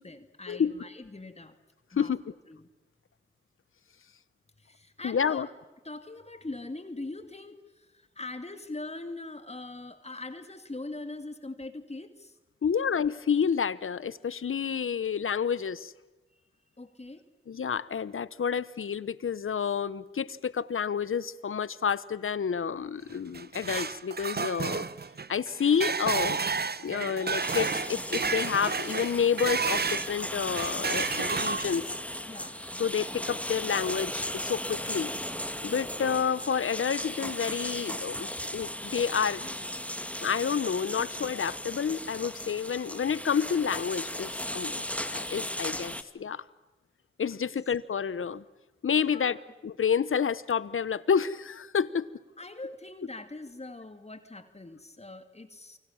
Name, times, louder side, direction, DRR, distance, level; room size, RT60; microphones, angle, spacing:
voice 1, 0.0-1.6 1.9-2.1 2.5-2.7 4.6-5.5 5.8-12.4 16.8-17.2 32.2-32.6 47.5-47.6 49.0-49.4 52.4-55.8, left 2 dB, 30° left, 9 dB, 2.4 m, -42 dB
voice 2, 5.0-5.5 12.6-15.9 17.5-24.9 25.3-26.4 26.8-31.8 32.8-35.1 35.6-39.5 40.2-44.8 45.1-46.4 47.2-48.4 48.8-49.4 49.6-52.1, left 7 dB, 80° left, 17 dB, 1.1 m, -29 dB
sound 1, 23.1-30.1 30.5-31.9, right 5 dB, 50° right, 0.9 m, -31 dB
sound 2, 27.4-46.0, left 1 dB, 5° left, 2.0 m, -36 dB
29.0 x 24.5 x 7.3 m, 1.1 s
wide cardioid pair, 65°, 21 cm